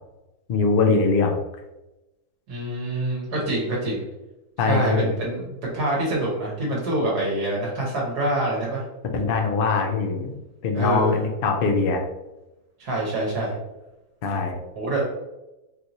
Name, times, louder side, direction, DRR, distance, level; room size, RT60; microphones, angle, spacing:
voice 1, 0.5-1.4 4.6-5.1 9.1-10.3 10.6-12.0 14.2-14.6, left 4 dB, 70° left, 3 dB, 0.5 m, -22 dB
voice 2, 2.5-4.0 4.7-8.8 10.7-11.2 12.8-13.6 14.8-15.1, right 1 dB, 80° right, -5 dB, 1.5 m, -25 dB
4.3 x 3.0 x 2.6 m, 0.99 s
omnidirectional pair, 1.7 m